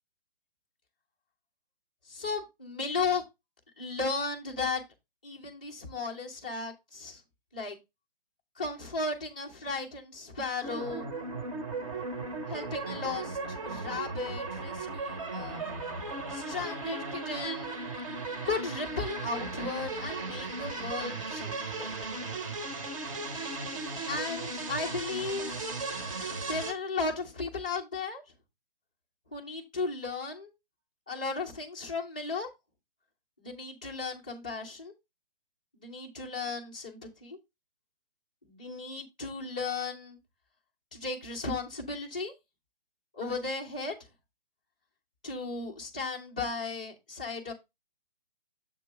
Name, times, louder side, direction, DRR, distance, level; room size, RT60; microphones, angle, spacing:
voice 1, 2.1-3.2 3.8-4.8 5.2-7.2 7.5-7.8 8.6-11.1 12.5-13.4 13.7-15.7 16.3-17.7 18.4-21.9 24.1-25.6 26.5-28.2 29.3-30.5 31.1-32.5 33.4-34.9 35.7-37.4 38.4-40.2 40.9-42.3 43.1-44.0 45.2-47.5, left 4 dB, 10° left, 0.4 m, -35 dB
sound 1, 10.6-26.7, right 3 dB, 35° right, 1.0 m, -36 dB
7.1 x 3.1 x 4.6 m
figure-of-eight pair, 135°, 29 cm